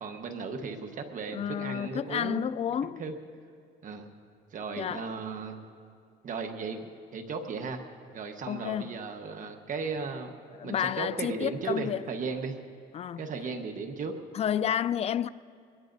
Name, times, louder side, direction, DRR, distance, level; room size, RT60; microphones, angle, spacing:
voice 1, 0.0-2.4 3.0-3.1 3.8-4.1 4.5-5.6 6.2-7.8 8.1-10.4 10.6-12.6 13.2-14.1, right 4 dB, 50° right, 1.3 m, -36 dB
voice 2, 1.3-3.0 4.8-5.1 8.5-9.0 10.6-12.0 12.9-13.3 14.3-15.3, left 9 dB, 40° left, 0.4 m, -30 dB
23.5 x 20.5 x 2.7 m
cardioid pair, 110°, 17 cm